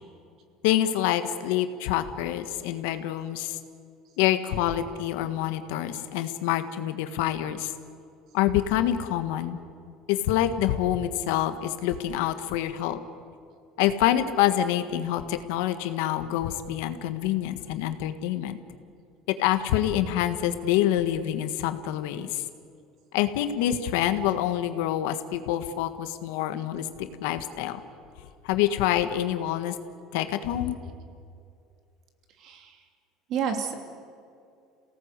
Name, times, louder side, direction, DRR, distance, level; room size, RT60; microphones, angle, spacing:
voice 1, 0.6-3.6 4.2-7.7 8.3-9.6 10.1-13.0 13.8-18.6 19.3-22.4 23.1-27.8 28.4-29.7 30.1-30.7, left 12 dB, 85° left, 9 dB, 1.6 m, -26 dB
voice 2, 32.4-32.8 33.3-33.8, right 7 dB, 50° right, 5 dB, 3.0 m, -29 dB
28.5 x 18.0 x 8.3 m, 2.4 s
cardioid pair, 140°, 0 cm